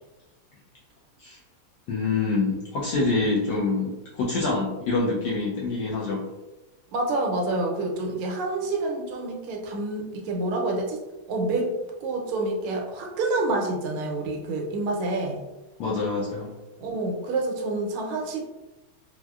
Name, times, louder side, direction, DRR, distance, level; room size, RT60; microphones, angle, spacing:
voice 1, 1.9-6.3 15.8-16.5, left 3 dB, 80° left, -5 dB, 1.0 m, -26 dB
voice 2, 6.9-11.0 11.3-11.7 12.0-15.4 16.8-18.4, right 2 dB, 85° right, 0 dB, 1.5 m, -28 dB
4.4 x 2.0 x 2.3 m, 1.1 s
omnidirectional pair, 2.4 m